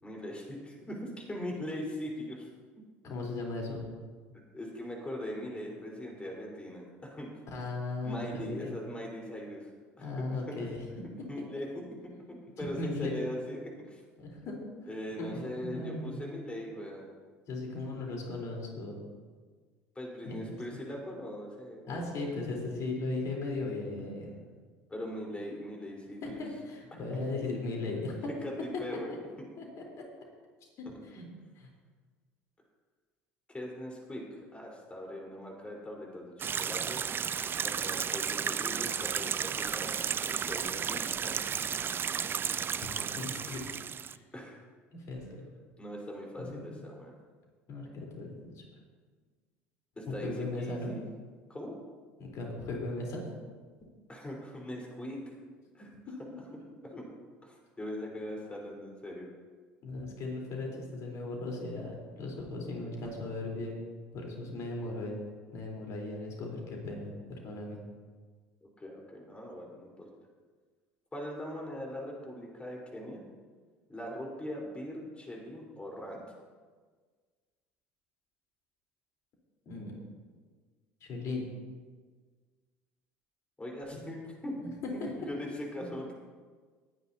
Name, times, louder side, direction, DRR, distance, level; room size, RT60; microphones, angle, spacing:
voice 1, 0.0-2.5 4.5-7.3 8.0-9.7 10.0-10.7 11.3-14.0 14.9-17.1 19.9-22.3 24.9-26.4 28.4-29.1 33.5-37.0 37.6-40.0 40.2-41.6 42.8-43.1 44.3-44.6 45.8-47.1 50.0-51.0 51.5-51.8 54.1-55.2 55.7-56.4 57.4-59.3 68.6-70.1 71.1-73.2 73.9-76.2 83.6-86.1, left 1 dB, 15° left, -2 dB, 4.4 m, -41 dB
voice 2, 3.0-3.8 7.5-8.5 10.0-10.8 12.6-13.1 14.2-14.6 15.2-16.2 17.5-19.0 20.3-20.6 21.9-24.4 26.2-28.1 29.6-29.7 31.1-31.3 31.6-31.7 43.2-43.8 44.1-44.2 44.9-45.2 46.4-46.6 47.7-48.6 50.2-50.9 52.2-53.2 56.1-56.4 59.8-63.8 64.1-65.2 65.5-67.8 79.7-79.9 81.0-81.4 83.9-84.0 85.0-85.1 85.8-85.9, left 2 dB, 50° left, -1 dB, 4.0 m, -37 dB
sound 1, 36.4-44.2, right 7 dB, 30° right, 0.5 m, -33 dB
21.0 x 10.0 x 2.9 m, 1.5 s
hypercardioid pair, 65°, 7 cm